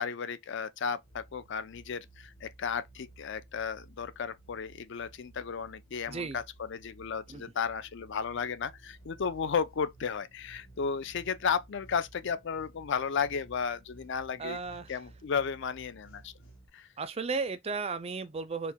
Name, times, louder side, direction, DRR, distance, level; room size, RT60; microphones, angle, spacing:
voice 1, 0.0-14.6 14.9-16.3 16.7-16.9, left 6 dB, 60° left, 0.4 m, -34 dB
sound 1, 1.0-16.7, right 2 dB, 75° left, 1.7 m, -55 dB
voice 2, 6.1-6.4 7.3-7.4 14.4-14.9 17.0-18.7, right 4 dB, 30° right, 0.4 m, -34 dB
4.5 x 2.1 x 3.6 m
head